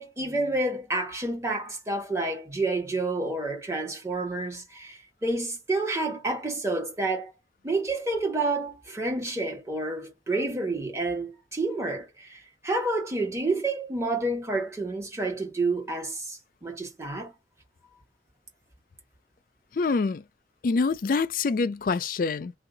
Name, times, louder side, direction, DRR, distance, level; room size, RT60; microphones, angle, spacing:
voice 1, 0.0-7.3 7.6-17.3, right 2 dB, 15° right, 1.3 m, -29 dB
voice 2, 19.7-20.2 20.6-22.5, left 4 dB, 50° left, 0.4 m, -25 dB
2.7 x 2.3 x 3.8 m
head